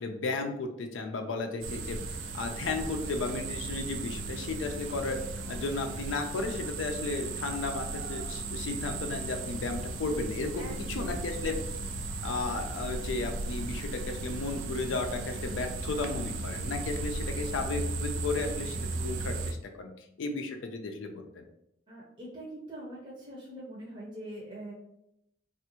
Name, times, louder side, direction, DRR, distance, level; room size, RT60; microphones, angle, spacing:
voice 1, 0.0-2.0 2.3-5.2 5.5-11.5 12.2-19.9 20.2-21.5, left 3 dB, 80° left, 4 dB, 0.4 m, -34 dB
sound 1, 1.6-19.5, right 3 dB, 85° right, 0.4 m, -36 dB
voice 2, 10.6-11.4 21.9-24.7, right 1 dB, 25° right, -5 dB, 0.6 m, -43 dB
3.3 x 2.4 x 3.0 m, 0.80 s
head